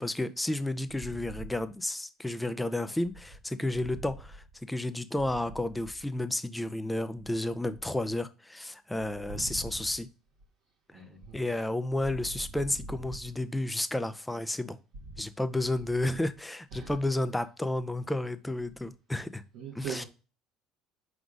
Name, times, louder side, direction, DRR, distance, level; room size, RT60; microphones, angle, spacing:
voice 1, 0.0-10.1 11.3-14.8 15.2-19.4 19.8-20.0, left 1 dB, 10° left, 0.5 m, -32 dB
voice 2, 0.9-1.5 3.7-4.0 5.2-5.3 9.2-9.9 10.9-11.6 12.0-12.1 12.5-13.1 14.9-15.1 16.7-17.0 19.5-20.1, right 3 dB, 70° right, 1.3 m, -42 dB
4.8 x 3.8 x 2.4 m
hypercardioid pair, 65°, 0 cm